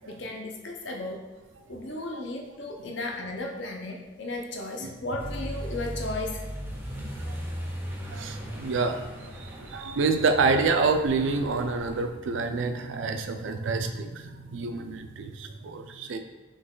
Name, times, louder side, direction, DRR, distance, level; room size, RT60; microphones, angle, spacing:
voice 1, 0.1-1.2 1.7-6.4, left 2 dB, 65° left, 1 dB, 0.7 m, -35 dB
Accelerating revving vroom, 5.2-12.1, equal, 10° right, 0.5 m, -37 dB
voice 2, 8.1-9.0 9.4-16.2, right 4 dB, 75° right, 7 dB, 0.4 m, -27 dB
3.9 x 3.1 x 3.8 m, 1.2 s
head